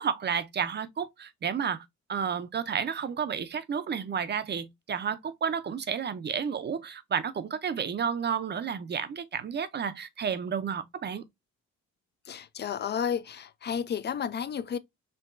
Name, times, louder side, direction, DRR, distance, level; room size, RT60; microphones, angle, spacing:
voice 1, 0.0-11.2, right 7 dB, 35° right, 0.5 m, -31 dB
voice 2, 12.3-14.8, left 7 dB, 35° left, 0.4 m, -32 dB
4.5 x 2.9 x 2.5 m
cardioid pair, 90°, 30 cm